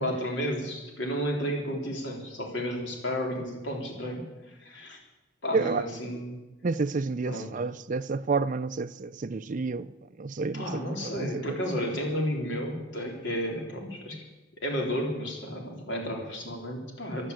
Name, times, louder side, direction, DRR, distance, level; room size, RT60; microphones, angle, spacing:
voice 1, 0.0-5.0 5.4-6.4 7.3-7.6 10.5-14.2 14.6-17.3, equal, 65° left, 3.7 m, -32 dB
voice 2, 5.5-5.8 6.6-9.9 10.2-11.5, right 4 dB, 40° right, 0.4 m, -30 dB
15.5 x 11.5 x 8.3 m
head